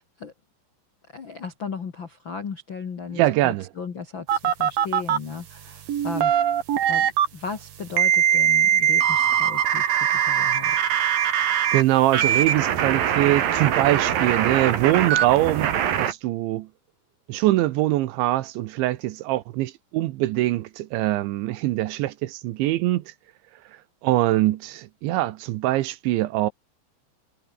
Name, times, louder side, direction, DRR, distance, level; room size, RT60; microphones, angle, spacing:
voice 1, 1.1-9.8 10.1-10.8, left 5 dB, 85° left, 1.0 m, -36 dB
voice 2, 3.1-3.7 11.7-16.7 17.3-23.0 24.0-26.5, right 16 dB, 75° right, 3.1 m, -23 dB
sound 1, 4.3-5.2 5.9-7.3 8.0-11.8 12.1-16.1, right 9 dB, 55° right, 3.5 m, -22 dB
omnidirectional pair, 5.6 m